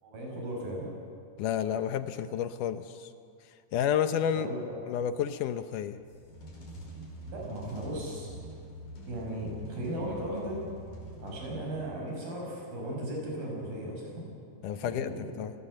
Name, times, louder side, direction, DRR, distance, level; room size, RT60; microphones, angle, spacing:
voice 1, 0.0-0.9 4.4-4.8 7.2-8.3 9.1-10.6 11.2-14.3 14.8-15.3, right 1 dB, 80° right, -1 dB, 8.1 m, -36 dB
voice 2, 1.4-3.1 3.7-4.5 4.9-6.0 14.6-15.1 15.4-15.5, left 9 dB, 75° left, 11 dB, 2.2 m, -30 dB
sound 1, 6.0-12.0, right 1 dB, 90° left, 6.8 m, -45 dB
29.5 x 19.0 x 7.8 m, 2.4 s
omnidirectional pair, 4.0 m